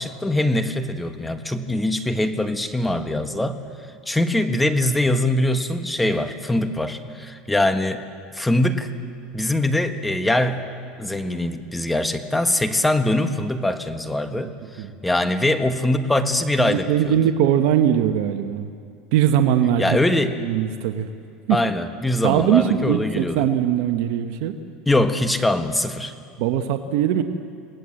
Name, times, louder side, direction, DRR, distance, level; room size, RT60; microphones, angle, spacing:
voice 1, 0.0-3.6 4.1-8.0 8.3-8.9 9.3-14.5 15.0-17.2 19.8-20.3 21.5-23.5 24.9-26.1, left 1 dB, 10° left, 8 dB, 1.5 m, -22 dB
voice 2, 16.6-18.7 19.1-20.0 20.4-21.1 21.5-21.6 22.2-24.5 26.4-27.2, right 10 dB, 70° right, 7 dB, 1.2 m, -21 dB
27.5 x 19.0 x 7.7 m, 2.3 s
supercardioid pair, 110°, 0 cm